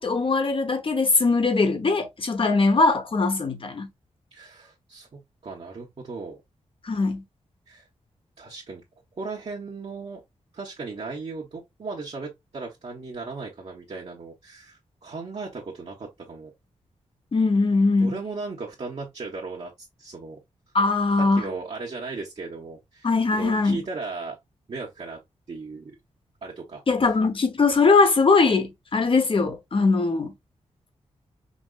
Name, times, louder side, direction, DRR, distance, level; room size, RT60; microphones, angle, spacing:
voice 1, 0.0-3.9 6.8-7.2 17.3-18.1 20.7-21.5 23.0-23.8 26.9-30.3, left 3 dB, 45° left, 1.2 m, -21 dB
voice 2, 4.3-6.4 7.7-7.9 8.4-8.8 9.2-10.2 10.5-16.5 18.0-19.7 20.0-20.4 21.2-24.4 24.7-25.2 25.5-25.9 26.4-26.8, right 4 dB, 55° right, 1.2 m, -36 dB
5.2 x 2.8 x 2.5 m
cardioid pair, 65°, 12 cm